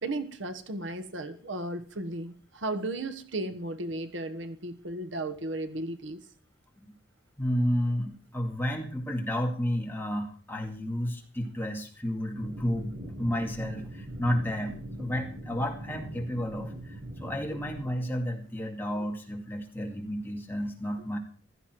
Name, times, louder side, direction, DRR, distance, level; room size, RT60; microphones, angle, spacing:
voice 1, 0.0-6.2, right 2 dB, 70° right, 9 dB, 1.3 m, -35 dB
voice 2, 7.4-12.9 13.2-21.2, equal, 10° left, 1 dB, 2.4 m, -31 dB
sound 1, 12.3-17.8, right 1 dB, 50° right, 7.7 m, -41 dB
16.0 x 13.0 x 4.7 m, 0.42 s
head